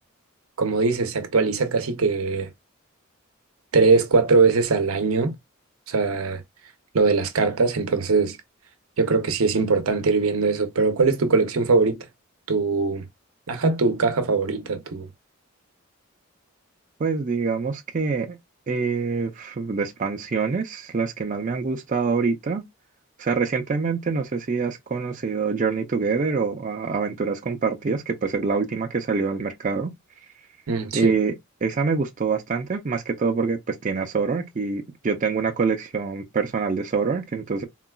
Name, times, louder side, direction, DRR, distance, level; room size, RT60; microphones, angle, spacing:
voice 1, 0.6-2.5 3.7-5.4 5.9-6.4 6.9-8.4 9.0-12.0 12.5-13.0 13.5-15.1 30.7-31.2, right 4 dB, 85° right, 0.6 m, -21 dB
voice 2, 17.0-18.4 18.7-22.6 23.2-29.9 30.9-31.3 31.6-37.6, right 4 dB, 35° right, 0.4 m, -25 dB
3.8 x 2.3 x 2.2 m
head